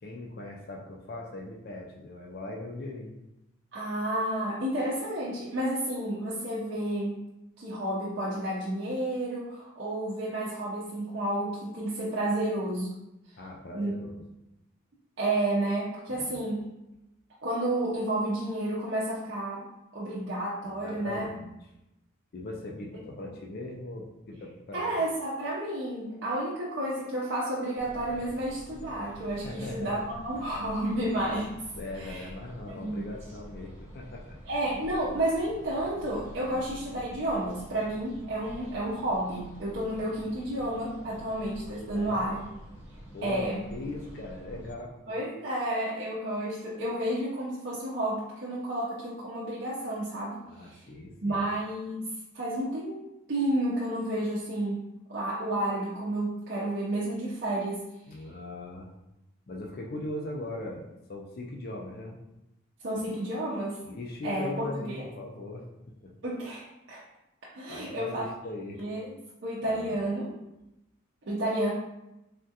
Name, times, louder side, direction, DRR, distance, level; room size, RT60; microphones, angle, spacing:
voice 1, 0.0-3.1 13.4-14.2 16.1-16.4 20.6-21.5 22.3-25.0 29.4-29.9 31.8-34.4 36.4-36.7 41.9-42.2 43.1-45.0 50.5-51.4 58.1-58.9 59.5-62.2 63.0-63.1 63.9-65.7 66.0-66.1 67.7-68.9 69.6-70.0, left 2 dB, 45° left, 0 dB, 0.4 m, -40 dB
voice 2, 3.7-7.2 7.6-13.0 13.7-13.9 15.2-16.7 17.4-19.7 19.9-21.3 24.7-31.5 31.9-32.3 32.7-33.0 34.5-42.5 43.2-43.6 45.1-50.8 51.2-53.0 53.3-54.8 55.1-57.8 62.8-63.8 64.2-65.1 66.2-67.0 67.4-68.2 68.8-69.1 69.4-70.3 71.3-71.7, right 1 dB, 55° right, -7 dB, 0.5 m, -31 dB
sound 1, 27.8-44.7, equal, 30° right, 0.9 m, -47 dB
3.4 x 2.3 x 2.7 m, 0.91 s
head